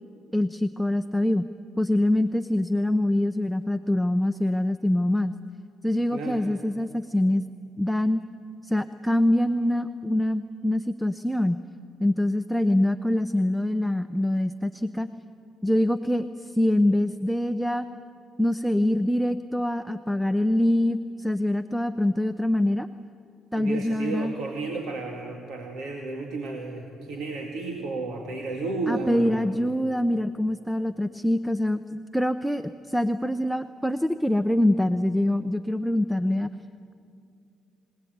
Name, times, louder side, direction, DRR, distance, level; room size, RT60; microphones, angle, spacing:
voice 1, 0.3-1.5 1.8-5.3 5.8-7.4 7.8-8.2 8.6-11.6 12.0-15.1 15.6-17.9 18.4-22.9 23.5-24.3 28.9-36.5, left 1 dB, ahead, 9 dB, 0.7 m, -24 dB
voice 2, 6.1-6.4 23.6-29.4, right 3 dB, 75° right, 2 dB, 2.2 m, -32 dB
24.0 x 18.0 x 9.4 m, 2.5 s
supercardioid pair, 70°, 0 cm